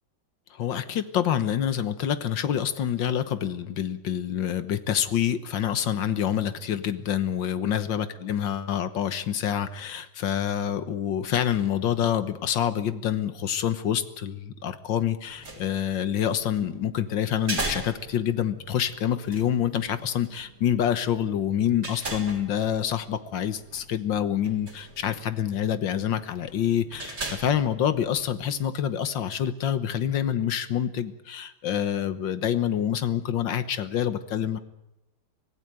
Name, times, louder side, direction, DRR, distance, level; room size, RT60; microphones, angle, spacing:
voice 1, 0.5-34.6, left 9 dB, 70° left, 12 dB, 1.9 m, -27 dB
sound 1, 15.2-28.6, right 2 dB, 45° right, 4.0 m, -40 dB
25.0 x 16.0 x 9.2 m, 0.90 s
omnidirectional pair, 2.1 m